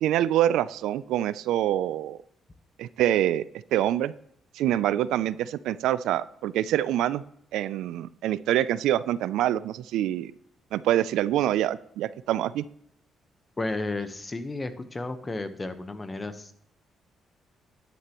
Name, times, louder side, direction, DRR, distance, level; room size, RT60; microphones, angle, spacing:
voice 1, 0.0-2.2 2.8-3.4 3.7-4.1 4.5-7.2 7.5-10.3 10.7-12.6, right 12 dB, 90° right, 17 dB, 0.3 m, -25 dB
voice 2, 13.6-16.5, left 2 dB, 25° left, 10 dB, 1.0 m, -33 dB
11.0 x 9.7 x 3.0 m, 0.71 s
cardioid pair, 90°, 0 cm